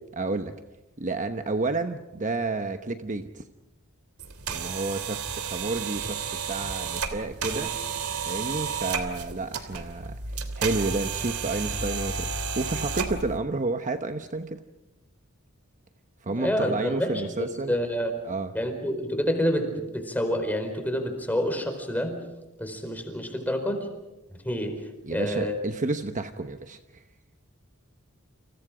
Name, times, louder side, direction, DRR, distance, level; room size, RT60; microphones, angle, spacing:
voice 1, 0.1-0.6 1.0-3.4 4.5-7.7 8.2-10.2 10.6-14.6 16.2-17.7 18.2-18.5 25.0-26.8, right 3 dB, 35° right, 7 dB, 1.0 m, -30 dB
sound 1, 4.2-13.4, right 5 dB, 85° right, 3.0 m, -32 dB
voice 2, 16.3-18.1 18.5-22.2 22.6-23.9 24.4-25.6, equal, 10° left, 6 dB, 4.5 m, -28 dB
29.5 x 28.0 x 5.1 m, 0.98 s
head